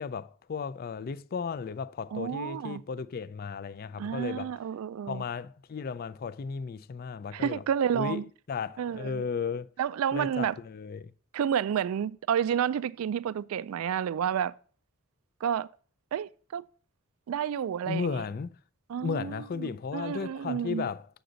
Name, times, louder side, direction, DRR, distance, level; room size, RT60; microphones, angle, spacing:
voice 1, 0.0-4.5 5.1-7.6 7.9-8.2 8.5-9.7 10.1-11.1 17.9-18.6 19.0-21.1, left 5 dB, 45° left, 0.4 m, -34 dB
voice 2, 2.1-2.8 4.0-5.2 7.3-8.2 8.8-9.2 9.8-10.6 11.3-14.5 15.4-15.7 16.1-16.6 17.3-18.2 18.9-20.9, right 8 dB, 85° right, 0.3 m, -30 dB
7.8 x 6.4 x 3.9 m
head